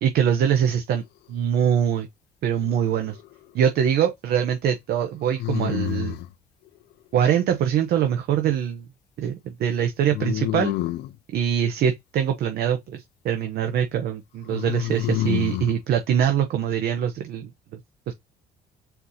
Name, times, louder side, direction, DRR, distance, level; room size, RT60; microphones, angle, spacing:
voice 1, 0.0-1.0 1.3-2.1 2.4-3.2 3.5-6.2 7.1-8.9 9.2-10.7 11.3-17.5 18.1-18.2, right 9 dB, 70° right, 0.8 m, -23 dB
sound 1, 2.6-3.3 5.4-6.3 10.1-11.2 14.5-15.7, left 15 dB, 80° left, 0.6 m, -28 dB
4.5 x 2.7 x 3.8 m
cardioid pair, 110°, 17 cm